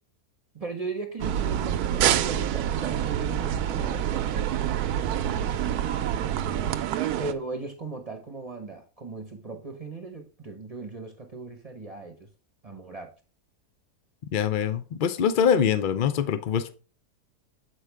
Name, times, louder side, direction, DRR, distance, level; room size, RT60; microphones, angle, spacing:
voice 1, 0.5-4.7 5.2-6.9 7.2-12.3 12.6-13.1, right 3 dB, 30° right, 4 dB, 0.7 m, -38 dB
sound 1, 1.2-7.3, right 10 dB, 80° right, 1.1 m, -27 dB
voice 2, 14.3-16.7, left 8 dB, 90° left, 11 dB, 0.4 m, -24 dB
7.7 x 4.7 x 3.4 m, 0.36 s
omnidirectional pair, 1.6 m